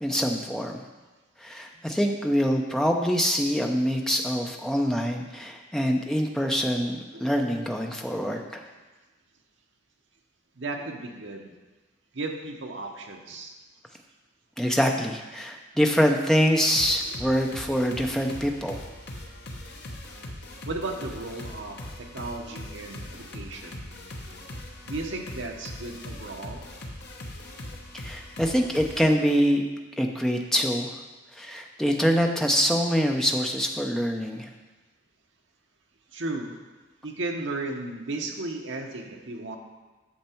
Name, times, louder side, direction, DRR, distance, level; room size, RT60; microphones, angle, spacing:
voice 1, 0.0-0.8 1.4-8.6 14.6-18.8 28.0-29.6 30.0-30.9 31.4-34.5, equal, ahead, 2 dB, 0.6 m, -25 dB
voice 2, 10.5-11.5 12.1-13.6 17.0-17.2 20.7-23.9 24.9-26.7 36.1-36.6 37.0-39.6, right 2 dB, 65° right, 2 dB, 1.0 m, -35 dB
sound 1, 16.7-29.1, left 1 dB, 50° left, 1.0 m, -40 dB
8.7 x 6.6 x 4.5 m, 1.2 s
head